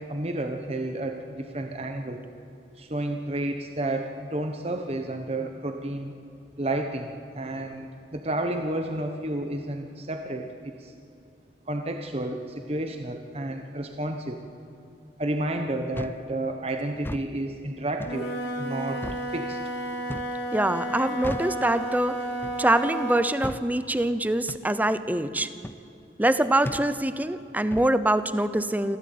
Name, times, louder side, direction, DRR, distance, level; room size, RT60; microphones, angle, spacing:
voice 1, 0.0-2.2 2.8-6.1 6.6-10.9 11.7-14.4 15.2-18.3 18.6-19.0 19.3-19.6, right 1 dB, 35° right, 5 dB, 1.1 m, -31 dB
sound 1, 15.9-16.2 16.9-17.3 18.0-18.2 19.0-19.3 20.1-20.4 21.2-21.6 22.4-22.7 23.4-23.7 24.5-24.7 25.6-25.8 26.6-26.9 27.7-27.9, left 1 dB, 10° left, 0.5 m, -35 dB
Wind instrument woodwind instrument, 18.0-23.4, right 1 dB, 75° left, 2.9 m, -32 dB
voice 2, 20.5-22.2 22.6-25.5 26.2-29.0, right 1 dB, 10° right, 12 dB, 0.8 m, -24 dB
26.0 x 15.5 x 8.6 m, 2.6 s
head